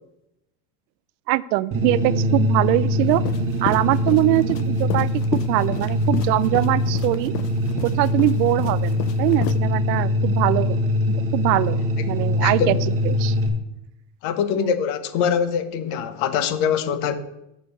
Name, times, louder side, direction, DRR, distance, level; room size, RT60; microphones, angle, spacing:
voice 1, 1.3-3.3 3.6-7.3 7.8-10.8 11.1-11.8 12.0-12.7 13.0-13.4 14.5-14.7, right 17 dB, 85° right, 0.6 m, -22 dB
sound 1, 1.7-13.5, left 1 dB, 25° right, 1.3 m, -23 dB
sound 2, 3.1-9.6, left 13 dB, 85° left, 0.7 m, -32 dB
voice 2, 12.4-12.8 14.2-17.2, left 7 dB, 60° left, 1.1 m, -23 dB
6.8 x 5.1 x 6.8 m
supercardioid pair, 125°, 50 cm